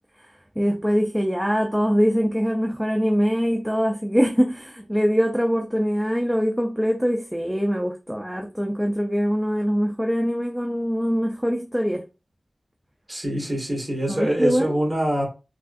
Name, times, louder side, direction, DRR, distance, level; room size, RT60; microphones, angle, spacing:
voice 1, 0.6-12.0 14.1-14.7, equal, 5° right, 0.4 m, -23 dB
voice 2, 13.1-15.3, right 1 dB, 20° right, 1.5 m, -24 dB
3.4 x 2.3 x 2.5 m
wide cardioid pair, 85°, 0 cm